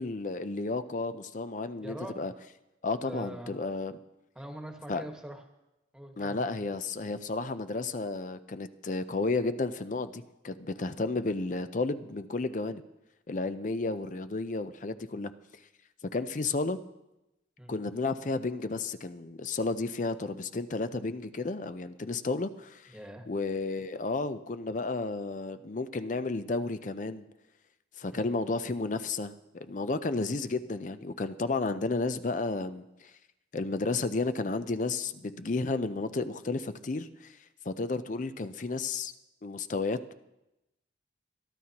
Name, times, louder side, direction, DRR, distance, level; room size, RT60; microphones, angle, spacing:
voice 1, 0.0-2.3 2.8-4.0 4.9-5.0 6.2-12.8 13.3-15.3 16.1-16.8 17.7-22.9 23.3-27.2 28.0-33.1 33.5-37.4 37.7-39.1 39.4-40.1, left 3 dB, 45° left, 11 dB, 0.5 m, -32 dB
voice 2, 1.8-2.2 3.0-3.5 4.3-5.4 5.9-6.7 17.6-17.7 22.9-23.3 28.1-28.3, equal, 5° right, 2 dB, 1.4 m, -43 dB
22.5 x 12.5 x 2.9 m, 0.94 s
head